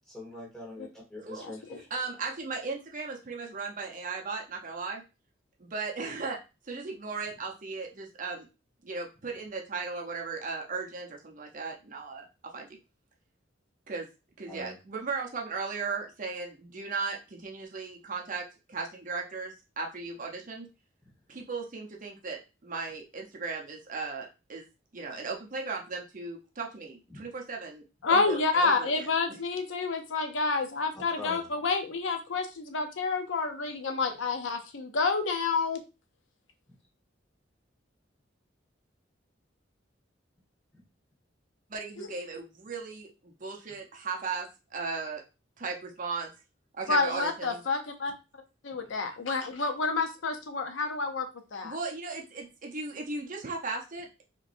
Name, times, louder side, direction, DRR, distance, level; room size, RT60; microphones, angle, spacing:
voice 1, 0.0-1.6 14.5-14.7 27.1-27.2 31.2-31.5, left 2 dB, 5° left, -4 dB, 1.6 m, -43 dB
voice 2, 1.9-5.0 5.6-6.4 6.6-8.5 8.8-12.3 12.5-12.7 13.9-14.1 14.4-20.7 21.3-24.7 24.9-29.1 41.7-45.2 45.6-46.3 46.7-47.6 51.6-54.2, right 4 dB, 45° right, 1 dB, 0.8 m, -37 dB
voice 3, 28.0-35.8 42.0-42.1 46.9-48.1 48.6-51.8, left 4 dB, 80° left, 6 dB, 0.7 m, -29 dB
4.6 x 3.0 x 2.6 m, 0.29 s
head